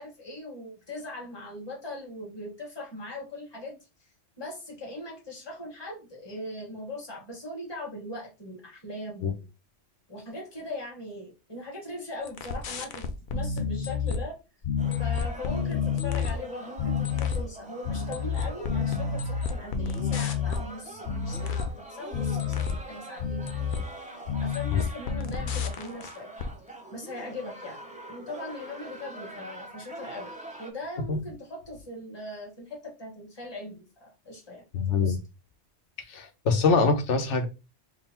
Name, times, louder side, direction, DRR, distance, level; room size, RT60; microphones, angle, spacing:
voice 1, 0.0-3.8 4.4-9.5 10.1-13.1 13.3-14.4 15.0-23.9 24.4-26.3 26.9-27.8 28.1-30.3 30.6-35.2, left 1 dB, 20° left, -2 dB, 1.4 m, -40 dB
sound 1, 12.2-14.2 14.6-16.4 16.8-17.5 17.8-20.7 21.0-21.8 22.1-22.8 23.2-23.9 24.3-26.1 26.4-26.5, left 6 dB, 55° left, 0.6 m, -29 dB
sound 2, 14.8-30.7, right 2 dB, 10° right, 0.6 m, -44 dB
voice 2, 34.7-35.2 36.1-37.5, left 4 dB, 75° left, 5 dB, 1.1 m, -24 dB
3.9 x 2.1 x 4.2 m, 0.28 s
omnidirectional pair, 1.2 m